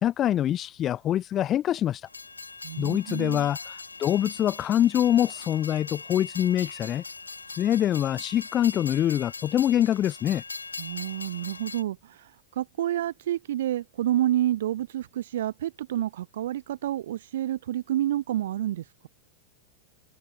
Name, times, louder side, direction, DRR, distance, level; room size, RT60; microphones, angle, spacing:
voice 1, 0.0-2.1 2.8-7.0 7.6-10.4, left 11 dB, 30° left, 0.4 m, -25 dB
Train, 2.1-11.8, left 4 dB, 80° left, 0.5 m, -40 dB
voice 2, 2.6-3.5 10.8-19.1, right 12 dB, 60° right, 0.5 m, -29 dB
figure-of-eight pair, 90°, 0 cm